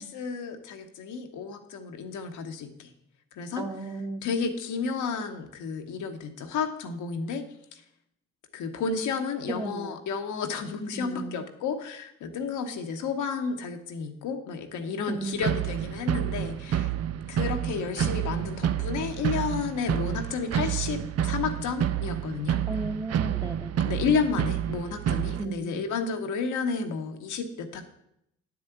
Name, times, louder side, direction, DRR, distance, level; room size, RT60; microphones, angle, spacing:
voice 1, 0.0-2.9 3.3-3.7 4.2-7.4 7.7-7.8 8.5-16.9 17.3-22.6 23.8-27.9, left 5 dB, 80° left, 5 dB, 1.1 m, -31 dB
voice 2, 3.6-4.3 9.5-10.0 10.9-11.4 15.1-15.7 22.7-23.7 25.4-25.8, right 2 dB, 15° right, 5 dB, 1.4 m, -35 dB
sound 1, 15.4-25.4, right 10 dB, 55° right, 0.5 m, -29 dB
9.5 x 4.8 x 7.8 m, 0.76 s
supercardioid pair, 45°, 30 cm